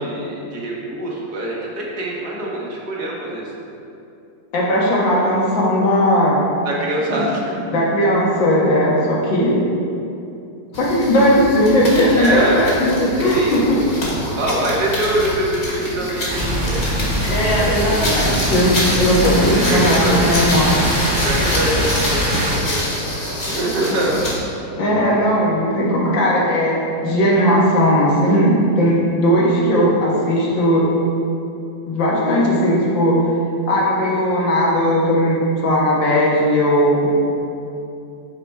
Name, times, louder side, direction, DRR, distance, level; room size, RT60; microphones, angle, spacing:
voice 1, 0.0-3.4 6.6-7.6 12.1-12.7 13.2-16.8 17.3-18.0 19.6-20.2 21.1-22.9 23.5-24.2, right 1 dB, 55° right, -4 dB, 1.9 m, -24 dB
voice 2, 4.5-6.5 7.1-7.2 7.7-9.7 10.7-13.9 17.3-20.9 24.8-30.9 31.9-33.3 33.7-37.1, equal, 75° left, -5 dB, 2.2 m, -17 dB
sound 1, 10.7-24.5, left 1 dB, 45° left, 2.3 m, -27 dB
sound 2, 16.3-22.6, equal, 15° right, 1.3 m, -21 dB
12.5 x 4.9 x 3.5 m, 2.7 s
omnidirectional pair, 2.1 m